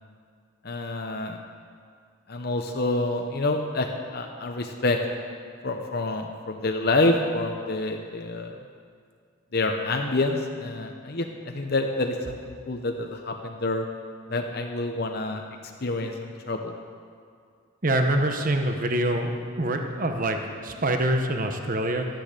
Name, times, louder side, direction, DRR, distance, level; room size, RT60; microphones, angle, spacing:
voice 1, 0.6-1.4 2.3-5.0 5.6-8.5 9.5-13.8 14.3-15.4 15.8-16.7, left 2 dB, 50° left, 3 dB, 0.9 m, -27 dB
voice 2, 17.8-19.3 19.6-22.1, right 1 dB, 40° right, 5 dB, 0.9 m, -25 dB
13.5 x 10.5 x 6.7 m, 2.2 s
head